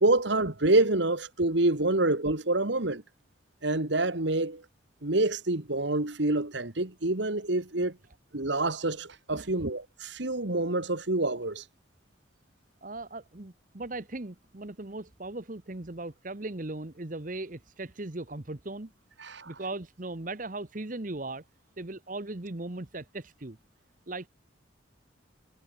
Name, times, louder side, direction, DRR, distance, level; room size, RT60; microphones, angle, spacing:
voice 1, 0.0-3.0 3.6-4.6 5.0-8.0 8.3-11.6 19.2-19.5, right 2 dB, 65° right, 1.9 m, -27 dB
voice 2, 12.8-18.9 19.5-21.4 21.8-23.6 24.1-24.3, right 2 dB, 40° right, 1.2 m, -38 dB
head